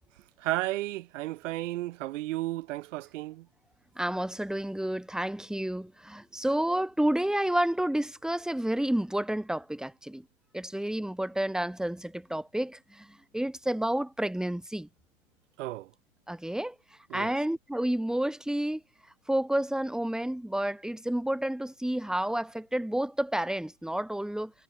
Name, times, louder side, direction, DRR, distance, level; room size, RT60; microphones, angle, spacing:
voice 1, 0.4-3.5 15.6-15.9 17.1-17.3, right 17 dB, 60° right, 3.2 m, -33 dB
voice 2, 4.0-10.2 10.5-14.9 16.3-16.8 17.1-18.8 19.3-24.5, right 1 dB, ahead, 2.4 m, -30 dB
hypercardioid pair, 115°, 42 cm